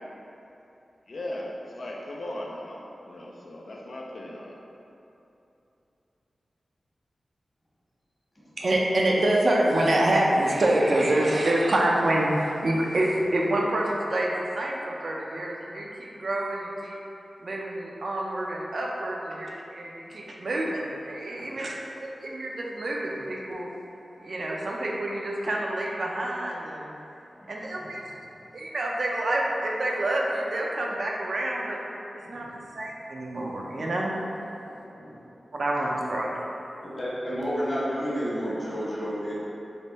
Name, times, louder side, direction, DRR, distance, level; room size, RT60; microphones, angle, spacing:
voice 1, 1.1-4.6, left 1 dB, 65° left, -2 dB, 0.3 m, -37 dB
voice 2, 8.6-16.9 17.4-23.7 24.2-26.9 27.5-28.0 28.5-31.8 32.3-32.5 32.8-34.1 35.5-36.3, right 1 dB, 65° right, -2 dB, 0.4 m, -27 dB
voice 3, 32.3-32.8 34.6-35.2 37.0-39.3, equal, 35° left, -8 dB, 1.1 m, -32 dB
3.3 x 2.2 x 4.0 m, 2.9 s
cardioid pair, 60°, 0 cm